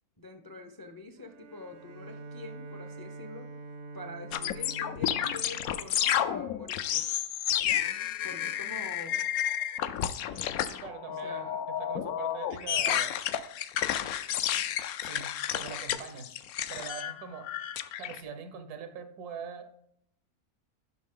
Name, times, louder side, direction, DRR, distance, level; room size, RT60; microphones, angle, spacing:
voice 1, 0.2-3.5 3.9-7.1 8.2-9.3 11.1-11.6, left 1 dB, 25° left, 6 dB, 0.5 m, -45 dB
Bowed string instrument, 1.2-6.7, right 3 dB, 60° right, 0.8 m, -46 dB
sound 1, 4.3-18.2, left 10 dB, 75° left, 1.0 m, -31 dB
voice 2, 10.8-13.1 15.0-16.4 16.7-17.5 18.0-19.7, right 6 dB, 85° right, 8 dB, 1.6 m, -42 dB
10.5 x 5.9 x 3.7 m, 0.73 s
omnidirectional pair, 1.6 m